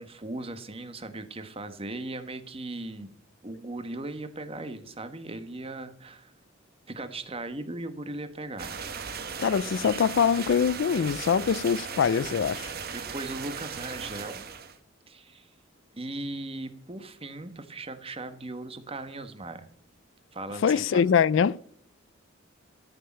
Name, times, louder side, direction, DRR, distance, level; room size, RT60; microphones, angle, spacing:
voice 1, 0.0-3.1 3.4-6.3 6.9-8.7 12.9-14.4 15.1-15.5 15.9-19.7 20.3-21.0, right 2 dB, 30° right, 1.3 m, -38 dB
sound 1, 8.6-14.8, right 6 dB, 50° right, 1.3 m, -37 dB
voice 2, 9.4-12.7 20.6-21.6, left 7 dB, 65° left, 0.3 m, -23 dB
13.5 x 6.6 x 6.2 m
head